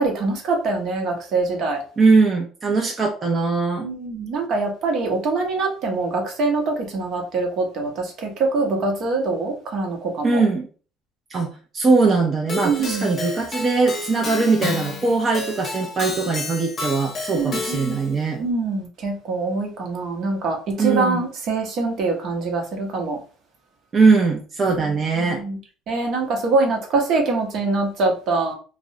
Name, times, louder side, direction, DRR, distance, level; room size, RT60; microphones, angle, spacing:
voice 1, 0.0-1.8 3.8-10.4 12.6-13.1 17.3-18.0 18.4-23.2 24.8-24.9 25.2-25.6 25.9-28.5, right 3 dB, 60° right, 2 dB, 0.8 m, -24 dB
voice 2, 2.0-3.9 10.2-10.7 11.3-11.5 11.7-18.4 20.8-21.2 23.9-25.4, right 4 dB, 35° right, 2 dB, 0.4 m, -20 dB
Keyboard (musical), 12.5-18.2, left 3 dB, 40° left, 0.6 m, -31 dB
2.4 x 2.0 x 2.7 m, 0.38 s
supercardioid pair, 100°, 0 cm